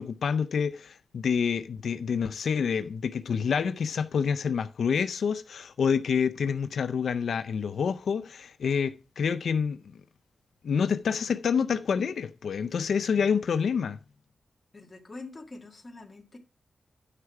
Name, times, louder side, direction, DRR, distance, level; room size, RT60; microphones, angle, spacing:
voice 1, 0.0-9.8 10.6-14.0, left 6 dB, 85° left, 0.4 m, -27 dB
voice 2, 14.7-16.4, left 3 dB, 25° left, 1.6 m, -44 dB
9.7 x 5.8 x 4.7 m
wide cardioid pair, 175°, 0 cm